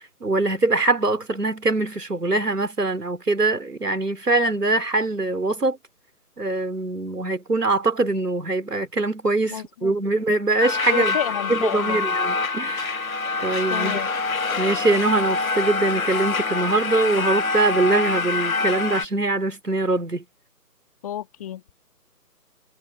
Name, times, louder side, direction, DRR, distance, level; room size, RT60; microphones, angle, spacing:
voice 1, 0.2-5.8 6.4-11.2 11.5-13.0 13.4-14.0 14.6-20.2, right 2 dB, 85° right, 3.9 m, -23 dB
voice 2, 9.5-9.9 10.9-12.0 13.7-14.1 21.0-21.6, left 11 dB, 25° left, 1.6 m, -30 dB
sound 1, 10.6-19.1, left 4 dB, 65° left, 1.8 m, -25 dB
figure-of-eight pair, 150°, 46 cm